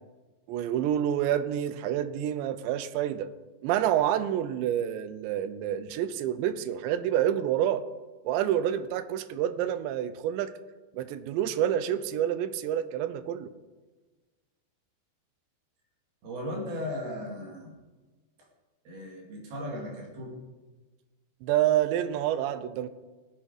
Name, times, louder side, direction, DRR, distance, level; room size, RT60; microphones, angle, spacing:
voice 1, 0.5-3.3 3.6-7.8 8.3-10.5 10.9-13.5 21.4-22.9, right 11 dB, 90° right, 13 dB, 3.0 m, -28 dB
voice 2, 16.2-17.7 18.9-20.4, left 1 dB, 65° right, -1 dB, 4.1 m, -36 dB
18.0 x 8.6 x 4.9 m, 1.3 s
omnidirectional pair, 5.0 m